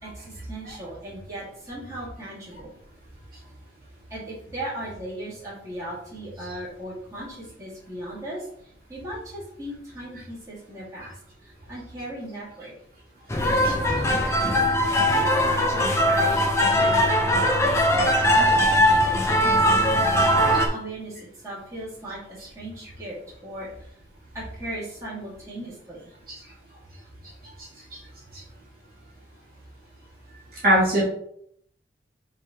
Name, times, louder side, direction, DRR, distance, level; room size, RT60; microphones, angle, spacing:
voice 1, 0.0-2.7 4.1-8.5 8.9-11.1 11.4-12.7 13.4-14.2 15.1-17.2 17.6-19.8 20.4-21.2 21.4-23.2 23.4-23.7 24.3-26.1, right 1 dB, 15° right, -8 dB, 2.5 m, -37 dB
sound 1, 13.3-20.7, equal, 15° left, 0.7 m, -20 dB
voice 2, 30.5-31.0, right 1 dB, 50° right, -6 dB, 2.2 m, -21 dB
6.6 x 3.3 x 4.4 m, 0.69 s
head